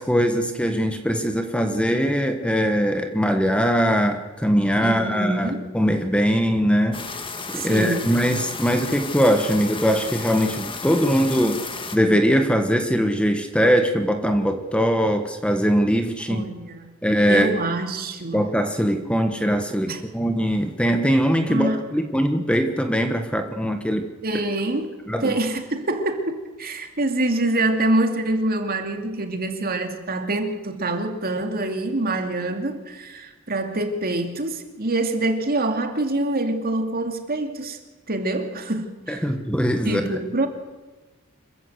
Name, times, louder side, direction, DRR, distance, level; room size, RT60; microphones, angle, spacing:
voice 1, 0.0-7.0 7.5-11.6 11.9-16.4 17.0-17.5 18.3-24.1 25.1-25.3 39.1-40.1, equal, 5° left, 6 dB, 1.4 m, -21 dB
voice 2, 4.8-5.7 7.5-8.1 16.3-17.0 17.3-18.5 19.8-20.0 21.5-21.8 24.2-24.9 25.2-37.8 38.1-39.2 39.8-40.5, right 2 dB, 45° right, 5 dB, 2.5 m, -25 dB
sound 1, 6.9-12.0, left 4 dB, 25° left, 1.8 m, -33 dB
26.5 x 14.5 x 8.1 m, 1.2 s
head